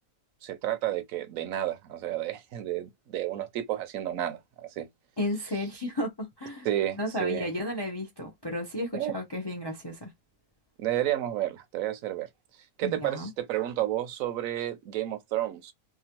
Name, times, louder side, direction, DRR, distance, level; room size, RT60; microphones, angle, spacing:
voice 1, 0.4-4.9 6.6-7.5 8.9-9.1 10.8-12.3 12.8-15.7, right 13 dB, 70° right, 1.0 m, -31 dB
voice 2, 5.2-6.7 7.0-10.1 12.8-13.3, left 1 dB, 45° left, 0.3 m, -33 dB
2.9 x 2.3 x 2.9 m
omnidirectional pair, 1.6 m